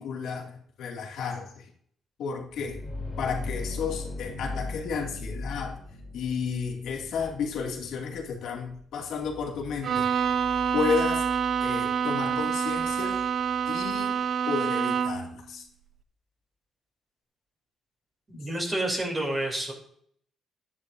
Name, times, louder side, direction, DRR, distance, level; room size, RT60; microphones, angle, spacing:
voice 1, 0.0-1.7 2.2-2.8 3.2-5.8 6.1-10.1 10.7-11.3 11.6-13.3 13.7-14.2 14.5-15.7, left 5 dB, 80° left, 1 dB, 2.3 m, -32 dB
sound 1, 2.5-14.0, left 2 dB, 25° left, 3.3 m, -40 dB
Bowed string instrument, 9.8-15.4, right 7 dB, 55° right, 0.5 m, -27 dB
voice 2, 18.3-19.7, right 1 dB, 25° right, -1 dB, 3.2 m, -29 dB
11.5 x 9.9 x 2.6 m, 0.62 s
cardioid pair, 90°, 0 cm